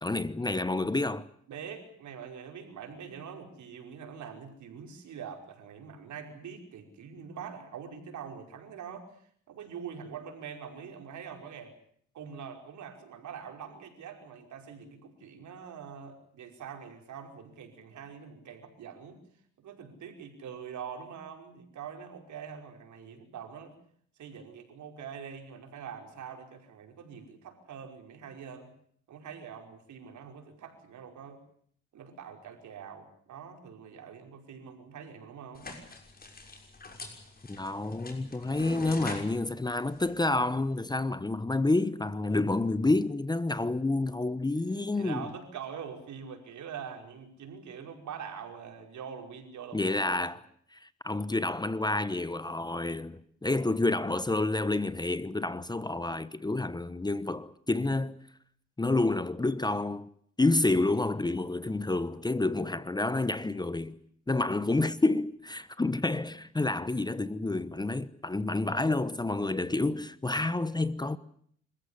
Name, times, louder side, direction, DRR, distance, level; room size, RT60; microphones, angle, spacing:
voice 1, 0.0-1.3 37.5-45.3 49.7-50.4 50.7-58.2 58.8-60.1 60.4-63.9 64.3-71.2, left 2 dB, 15° left, 1.0 m, -29 dB
voice 2, 1.5-11.8 12.1-19.2 19.6-23.8 24.2-28.7 29.1-31.4 31.9-35.7 44.9-49.9, right 7 dB, 70° right, 5.3 m, -44 dB
sound 1, 35.5-40.8, left 3 dB, 30° left, 6.3 m, -45 dB
26.5 x 15.0 x 10.0 m
cardioid pair, 90°, 30 cm